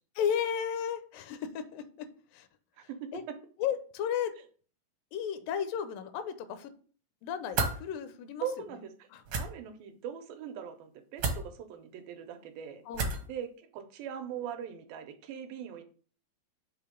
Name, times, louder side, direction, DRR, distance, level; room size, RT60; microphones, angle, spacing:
voice 1, 0.2-2.5 2.8-3.2 3.6-4.3 5.1-6.7 7.2-8.5 9.1-9.2 12.9-13.2, left 8 dB, 85° left, 10 dB, 2.3 m, -34 dB
voice 2, 2.8-3.1 8.4-8.9 9.4-12.8 13.2-15.8, right 8 dB, 90° right, 6 dB, 2.5 m, -41 dB
sound 1, 7.5-7.8 9.2-9.4 11.2-11.4 12.9-13.3, right 4 dB, 70° right, 1.3 m, -30 dB
6.8 x 2.9 x 5.0 m, 0.43 s
omnidirectional pair, 4.0 m